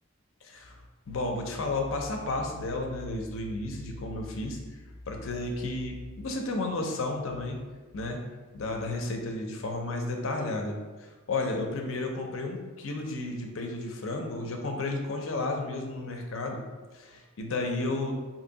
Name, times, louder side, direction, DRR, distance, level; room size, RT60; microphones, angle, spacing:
voice 1, 0.4-4.6 5.1-7.6 7.9-8.2 8.5-16.6 16.9-18.1, left 2 dB, 75° left, 2 dB, 0.6 m, -32 dB
2.8 x 2.7 x 3.9 m, 1.3 s
head